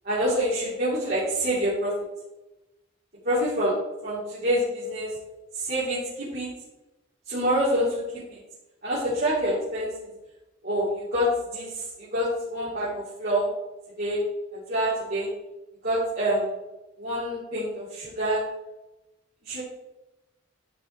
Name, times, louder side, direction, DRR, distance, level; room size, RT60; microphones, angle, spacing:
voice 1, 0.0-1.9 3.2-3.7 4.0-5.1 5.6-6.5 7.3-7.9 8.3-8.4 8.8-10.1 10.6-13.5 14.0-14.2 14.5-15.3 15.8-16.5 17.0-18.4 19.4-19.6, equal, 50° right, -11 dB, 3.1 m, -26 dB
11.0 x 5.6 x 4.6 m, 1.0 s
head